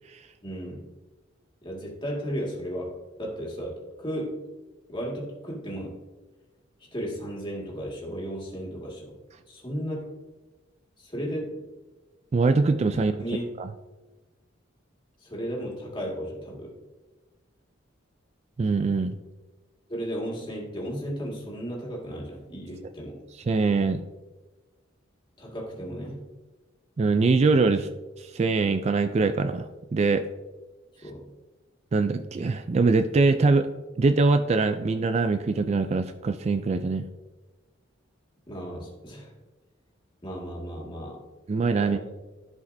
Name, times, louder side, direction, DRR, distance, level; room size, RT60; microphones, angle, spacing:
voice 1, 0.4-0.8 1.6-4.4 4.9-5.9 6.9-9.2 9.5-10.1 11.0-11.6 13.2-13.5 15.2-16.7 19.9-23.2 25.4-26.3 31.0-31.2 38.5-39.3 40.2-41.2 41.8-42.0, equal, 25° left, -3 dB, 1.9 m, -34 dB
voice 2, 12.3-13.1 13.6-13.7 18.6-19.2 23.5-24.0 27.0-27.9 28.2-30.2 31.9-33.7 34.0-37.1 41.5-42.1, right 3 dB, 35° right, 9 dB, 0.3 m, -23 dB
14.0 x 5.0 x 2.6 m, 1.2 s
head